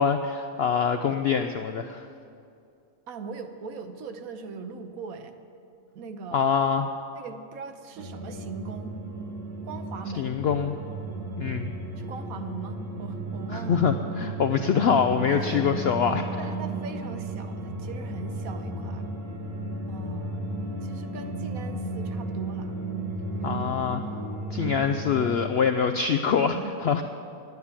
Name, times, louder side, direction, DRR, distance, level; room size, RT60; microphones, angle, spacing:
voice 1, 0.0-2.1 6.3-6.9 10.1-10.7 11.4-11.7 13.5-16.3 23.4-24.0 24.5-26.6 26.8-27.0, left 6 dB, 70° left, 7 dB, 0.6 m, -24 dB
voice 2, 3.1-5.3 5.9-6.5 7.1-8.9 9.6-10.4 11.5-11.6 12.0-13.9 15.3-15.7 16.4-19.1 19.9-22.8 23.4-23.7 24.5-24.9 26.3-27.0, right 5 dB, 70° right, 8 dB, 1.2 m, -40 dB
sound 1, 8.0-25.5, right 2 dB, 85° right, 2.0 m, -34 dB
11.0 x 9.6 x 8.7 m, 2.5 s
omnidirectional pair, 1.6 m